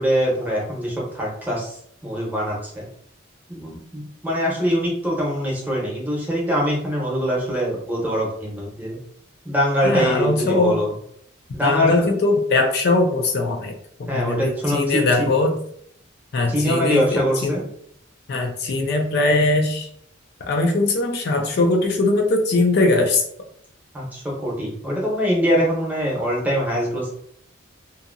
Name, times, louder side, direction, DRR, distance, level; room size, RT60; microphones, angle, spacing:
voice 1, 0.0-2.8 3.5-9.0 9.4-10.9 11.5-12.1 14.1-15.3 16.5-17.6 23.9-27.1, equal, 10° right, -4 dB, 0.8 m, -23 dB
voice 2, 9.8-10.8 11.6-15.6 16.3-17.6 18.3-19.9 20.5-23.2, left 2 dB, 50° left, 3 dB, 0.4 m, -20 dB
2.7 x 2.7 x 2.5 m, 0.66 s
head